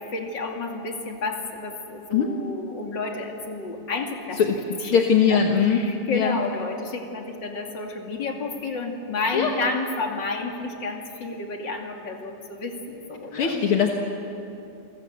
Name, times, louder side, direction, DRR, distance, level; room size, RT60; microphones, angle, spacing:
voice 1, 0.1-4.4 4.8-13.6, left 3 dB, 35° left, 2 dB, 2.8 m, -31 dB
voice 2, 4.9-5.8 6.1-6.4 9.3-9.5 13.3-13.9, left 7 dB, 55° left, 2 dB, 1.7 m, -20 dB
29.0 x 22.5 x 8.0 m, 2.8 s
omnidirectional pair, 4.0 m